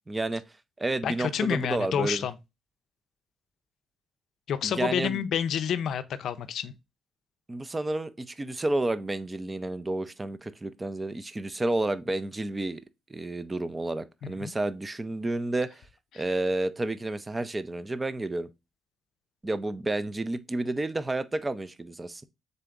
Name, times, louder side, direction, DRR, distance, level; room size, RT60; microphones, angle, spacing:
voice 1, 0.1-0.4 0.8-2.3 4.6-5.2 7.5-12.8 13.1-15.8 16.2-18.5 19.4-22.3, right 2 dB, 20° right, 0.4 m, -30 dB
voice 2, 1.0-2.4 4.5-6.7 14.2-14.5, left 8 dB, 70° left, 0.4 m, -29 dB
3.9 x 3.3 x 3.6 m
cardioid pair, 90°, 0 cm